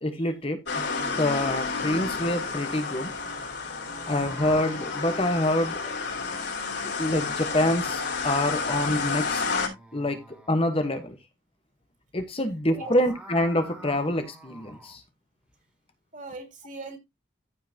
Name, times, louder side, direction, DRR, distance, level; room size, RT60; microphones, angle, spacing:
voice 1, 0.0-0.6 1.0-3.1 4.1-5.8 6.8-9.4 9.9-10.2 10.5-11.1 12.1-15.0, left 1 dB, 30° left, 8 dB, 1.2 m, -26 dB
sound 1, 0.7-9.7, left 4 dB, 70° left, 4.9 m, -31 dB
sound 2, 2.0-5.9 6.9-11.1 12.5-15.0, equal, 5° right, 2.5 m, -48 dB
voice 2, 6.3-6.8 12.7-12.9 16.1-17.0, right 2 dB, 40° right, 5 dB, 2.9 m, -41 dB
14.5 x 5.7 x 2.8 m, 0.21 s
head